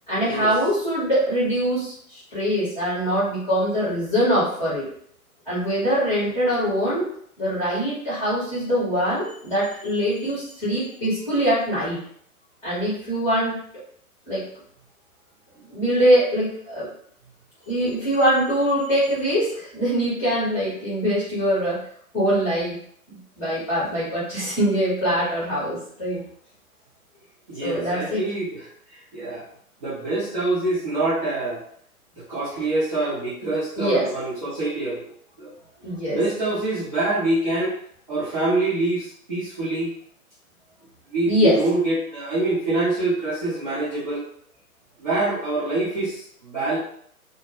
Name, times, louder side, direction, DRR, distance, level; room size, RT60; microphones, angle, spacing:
voice 1, 0.1-4.8 5.5-7.1 7.4-12.0 12.6-13.6 14.3-14.4 15.7-16.9 17.7-21.8 22.1-22.7 23.1-26.2 27.6-28.2 33.8-34.1 35.8-36.2 41.3-41.6, equal, 5° left, -12 dB, 0.7 m, -23 dB
voice 2, 27.5-29.4 29.8-31.6 32.2-35.1 35.4-35.5 36.1-37.8 38.1-39.9 41.1-44.2 45.0-46.8, right 2 dB, 25° right, -11 dB, 0.6 m, -25 dB
2.1 x 2.0 x 2.8 m, 0.64 s
figure-of-eight pair, 130°, 45 cm